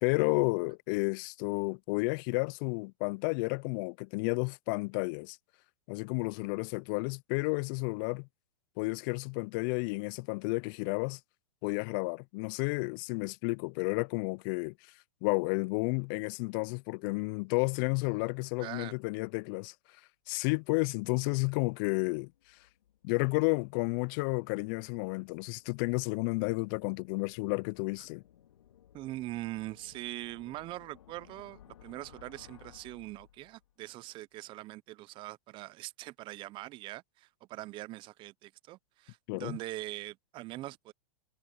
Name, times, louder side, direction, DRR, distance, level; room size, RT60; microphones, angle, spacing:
voice 1, 0.0-5.4 5.9-8.3 8.8-11.2 11.6-14.7 15.2-19.7 20.3-22.3 23.0-28.2 39.3-39.6, left 30 dB, 40° left, 0.4 m, -31 dB
voice 2, 18.6-18.9 28.9-40.9, right 17 dB, 30° right, 0.6 m, -42 dB
sound 1, 22.4-33.8, left 11 dB, 75° left, 2.2 m, -60 dB
hypercardioid pair, 120°, 16 cm